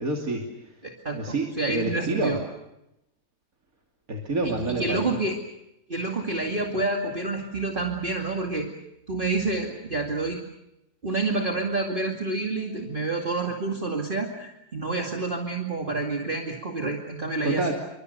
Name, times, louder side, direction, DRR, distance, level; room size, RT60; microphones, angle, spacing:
voice 1, 0.0-0.7 1.1-2.4 4.1-5.1 17.4-17.7, right 2 dB, 55° right, 0 dB, 3.2 m, -28 dB
voice 2, 0.8-2.4 4.4-5.4 5.9-8.7 9.1-10.4 11.0-17.7, right 3 dB, 30° right, 1 dB, 2.5 m, -28 dB
28.0 x 25.0 x 6.7 m, 0.86 s
omnidirectional pair, 1.8 m